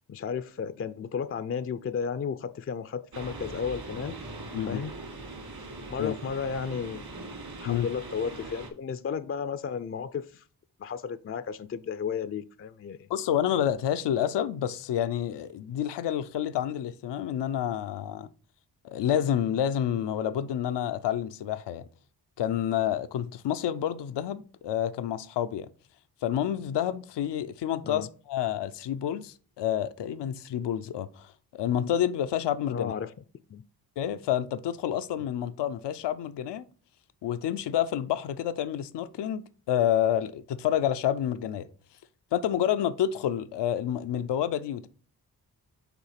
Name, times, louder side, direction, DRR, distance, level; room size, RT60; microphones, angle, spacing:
voice 1, 0.0-4.2 4.7-4.9 5.9-7.0 7.6-10.4 10.8-13.1 27.8-28.1 32.7-33.1 33.5-33.6, left 6 dB, 35° left, 0.4 m, -33 dB
sound 1, 3.1-8.7, right 2 dB, 65° right, 2.2 m, -41 dB
voice 2, 13.1-18.3 18.8-21.8 22.4-25.7 26.2-32.9 34.0-36.6 37.2-41.7 42.3-44.9, left 10 dB, 85° left, 0.5 m, -29 dB
5.9 x 3.8 x 5.7 m
cardioid pair, 60°, 40 cm